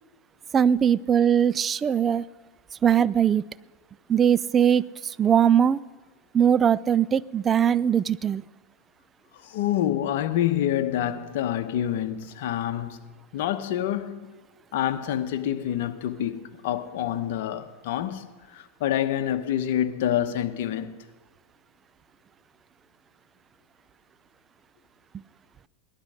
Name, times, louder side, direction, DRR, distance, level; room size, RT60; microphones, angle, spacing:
voice 1, 0.5-2.2 2.8-3.4 4.1-4.8 5.2-5.8 6.3-8.4, right 8 dB, 25° right, 0.3 m, -20 dB
voice 2, 9.4-13.0 13.3-14.3 14.7-18.2 18.5-21.0, left 11 dB, 65° left, 1.1 m, -27 dB
18.5 x 11.5 x 5.0 m
hypercardioid pair, 115°, 0 cm